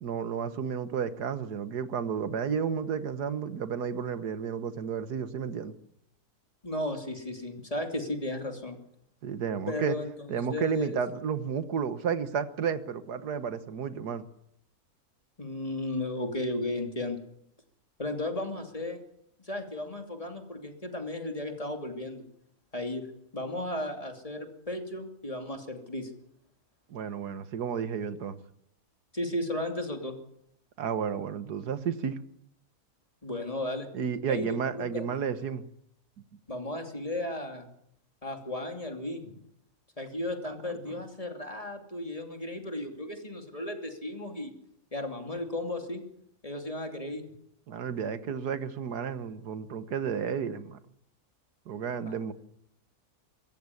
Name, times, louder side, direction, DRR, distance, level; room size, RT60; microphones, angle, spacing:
voice 1, 0.0-5.7 9.2-10.0 10.3-14.3 26.9-28.4 30.8-32.2 33.9-35.6 40.9-41.0 47.7-50.8 51.7-52.3, right 7 dB, 90° right, 12 dB, 1.8 m, -32 dB
voice 2, 6.6-8.8 9.7-11.0 15.4-17.2 18.0-19.0 19.4-22.2 22.7-23.0 23.3-26.1 29.1-30.2 33.2-33.9 34.3-35.0 36.5-37.7 38.2-39.3 40.0-44.5 44.9-46.0 46.4-47.2 52.1-52.3, left 1 dB, 20° left, 4 dB, 2.9 m, -35 dB
24.5 x 14.5 x 9.8 m, 0.74 s
omnidirectional pair, 1.7 m